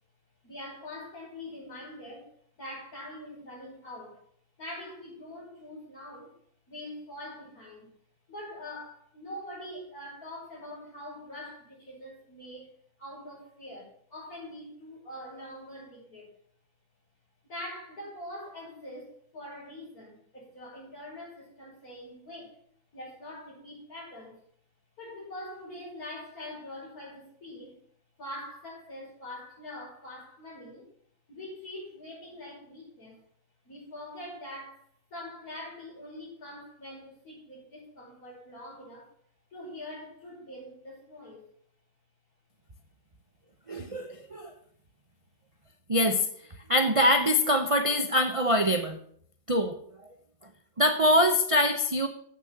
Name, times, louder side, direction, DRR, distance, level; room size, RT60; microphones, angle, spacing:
voice 1, 0.4-2.3 2.6-4.3 4.6-6.4 6.7-7.9 8.3-12.7 13.0-16.3 17.5-22.6 22.9-24.4 25.0-27.8 28.2-30.9 31.3-33.2 33.6-34.8 35.1-39.1 39.5-41.4, left 1 dB, 70° left, -5 dB, 5.7 m, -43 dB
voice 2, 43.7-44.5 45.9-46.3 46.7-49.0 49.5-49.8 50.0-50.1 50.8-52.1, equal, 30° right, 5 dB, 0.6 m, -24 dB
8.3 x 6.9 x 7.6 m, 0.62 s
omnidirectional pair, 1.6 m